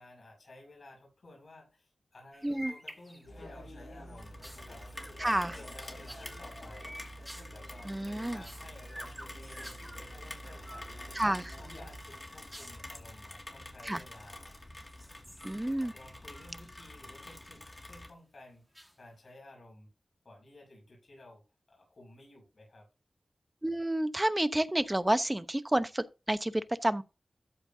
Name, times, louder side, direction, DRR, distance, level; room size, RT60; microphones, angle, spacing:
voice 1, 0.0-10.9 11.6-14.6 15.6-18.7 19.0-19.9 20.2-21.4 21.7-22.9, left 1 dB, 55° left, 6.2 m, -55 dB
sound 1, 2.3-3.5 3.9-10.0 10.5-11.4 11.7-13.2 14.0-14.5 14.9-16.9 17.3-17.9 18.7-19.3, equal, ahead, 1.7 m, -50 dB
voice 2, 2.4-2.7 5.2-5.6 7.8-8.4 11.1-11.5 13.8-14.0 15.4-15.9 23.6-27.0, right 1 dB, 15° right, 0.9 m, -30 dB
sound 2, 3.3-12.0, right 1 dB, 85° left, 5.4 m, -48 dB
Rain, 4.2-18.1, left 1 dB, 25° left, 2.2 m, -48 dB
13.5 x 7.5 x 2.7 m
wide cardioid pair, 90°, 0 cm